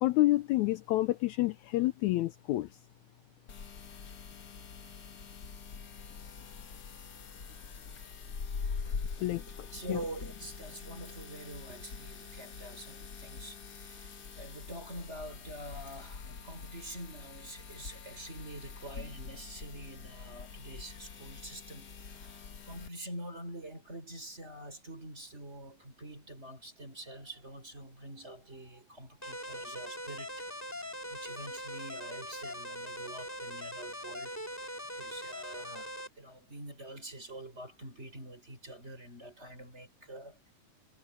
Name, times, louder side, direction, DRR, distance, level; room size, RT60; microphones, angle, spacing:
voice 1, 0.0-2.7 9.2-10.0, left 17 dB, 80° left, 1.8 m, -29 dB
sound 1, 3.5-22.9, left 5 dB, 45° left, 1.3 m, -44 dB
voice 2, 9.7-40.5, right 1 dB, 20° right, 4.9 m, -46 dB
sound 2, 29.2-36.1, equal, 5° left, 2.1 m, -41 dB
omnidirectional pair, 3.7 m